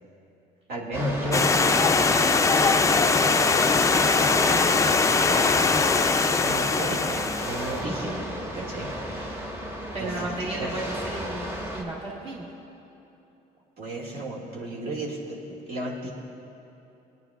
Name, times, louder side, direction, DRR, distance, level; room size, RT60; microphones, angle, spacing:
voice 1, 0.7-3.9 4.8-9.5 10.0-10.7 13.8-16.1, right 1 dB, 65° right, -4 dB, 2.1 m, -34 dB
sound 1, 0.9-11.8, equal, 15° right, 1.3 m, -34 dB
Stream, 1.3-7.8, left 4 dB, 20° left, 0.4 m, -21 dB
voice 2, 4.3-4.7 9.9-12.5, right 1 dB, 35° right, -5 dB, 1.5 m, -34 dB
21.5 x 9.4 x 2.4 m, 2.9 s
cardioid pair, 110°, 17 cm